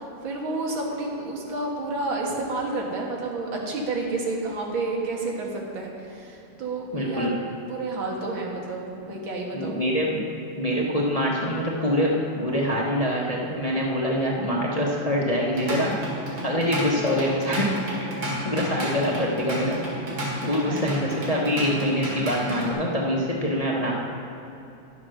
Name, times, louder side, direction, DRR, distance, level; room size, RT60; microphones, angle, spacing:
voice 1, 0.2-7.4 7.7-9.8 20.4-20.8, right 2 dB, 85° right, -2 dB, 2.5 m, -30 dB
voice 2, 6.9-7.3 9.1-9.2 9.5-10.2 10.6-15.9 16.4-17.8 18.2-19.8 20.4-23.9, equal, 25° left, -3 dB, 0.8 m, -25 dB
Drum kit / Drum, 15.3-22.7, equal, 60° right, 2.7 m, -31 dB
11.0 x 7.3 x 6.3 m, 2.9 s
omnidirectional pair, 2.1 m